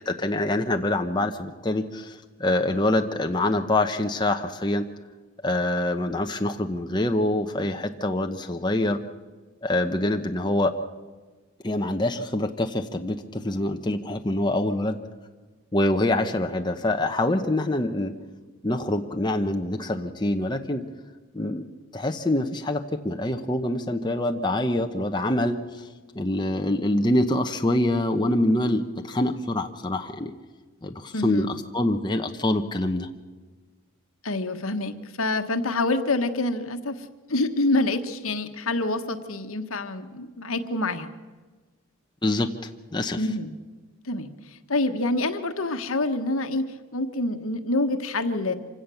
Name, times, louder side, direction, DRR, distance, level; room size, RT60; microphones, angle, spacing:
voice 1, 0.1-4.9 5.4-9.0 9.6-10.8 11.6-15.0 15.7-18.1 18.6-20.8 21.3-21.6 21.9-25.9 26.1-30.3 30.8-33.1 42.2-43.2, left 1 dB, 20° left, 4 dB, 0.9 m, -25 dB
voice 2, 31.1-31.5 34.2-41.1 43.2-43.6 44.0-46.7 46.9-48.5, left 2 dB, 75° left, 8 dB, 1.4 m, -27 dB
26.0 x 17.0 x 7.0 m, 1.3 s
head